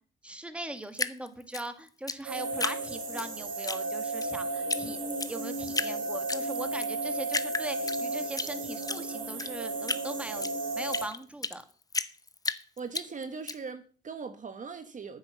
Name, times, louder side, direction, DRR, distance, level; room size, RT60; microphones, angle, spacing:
voice 1, 0.2-5.0 5.3-11.6, right 1 dB, 5° right, 1.8 m, -40 dB
Drip, 0.9-3.3 3.6-4.3 4.7-4.8 5.1-5.9 6.3-6.9 7.3-8.5 8.8-11.6 11.9-13.5, left 3 dB, 20° left, 0.8 m, -33 dB
sound 1, 2.2-11.1, right 2 dB, 80° right, 3.4 m, -34 dB
voice 2, 12.8-15.2, right 5 dB, 40° right, 1.2 m, -40 dB
9.7 x 7.4 x 7.5 m
cardioid pair, 90°, 20 cm